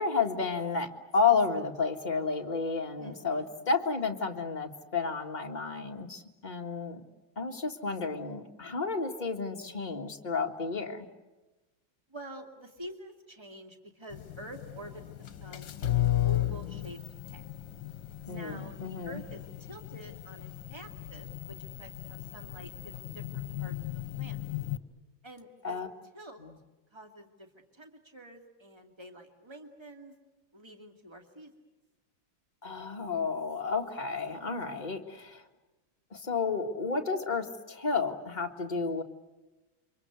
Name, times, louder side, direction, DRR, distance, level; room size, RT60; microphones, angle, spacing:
voice 1, 0.0-7.0 7.3-11.1 18.3-19.2 25.6-25.9 32.6-35.4 36.1-39.0, left 4 dB, 25° left, 3 dB, 1.7 m, -31 dB
voice 2, 3.0-3.6 12.1-17.0 17.2-17.5 18.3-24.5 25.2-25.8 26.1-26.4 26.9-30.2 30.5-31.5, right 1 dB, 15° right, 4 dB, 2.4 m, -48 dB
sound 1, 14.1-24.8, left 14 dB, 65° left, 1.7 m, -35 dB
29.0 x 24.5 x 8.2 m, 1.1 s
omnidirectional pair, 2.2 m